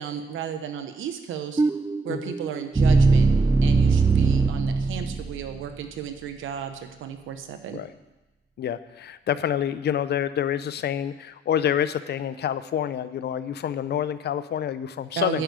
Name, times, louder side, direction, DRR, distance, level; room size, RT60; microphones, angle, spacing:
voice 1, 0.0-1.6 2.0-3.3 3.6-7.8 15.1-15.4, right 8 dB, 80° right, 7 dB, 1.1 m, -34 dB
sound 1, 1.6-5.6, right 4 dB, 15° right, 0.4 m, -21 dB
voice 2, 8.6-15.4, left 9 dB, 55° left, 14 dB, 0.6 m, -27 dB
10.0 x 6.1 x 8.1 m, 1.1 s
cardioid pair, 90°, 20 cm